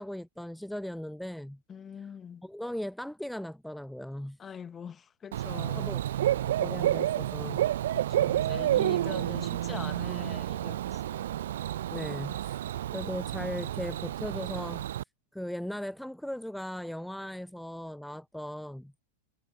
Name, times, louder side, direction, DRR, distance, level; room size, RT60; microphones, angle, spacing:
voice 1, 0.0-1.6 2.4-4.4 5.8-6.0 6.6-7.7 11.9-12.6 12.9-14.8 15.3-19.0, equal, ahead, 0.3 m, -38 dB
voice 2, 1.7-2.5 4.4-6.0 7.9-11.4, left 7 dB, 20° left, 2.0 m, -43 dB
Bird / Cricket, 5.3-15.0, right 12 dB, 60° right, 0.7 m, -30 dB
figure-of-eight pair, 90°, 0 cm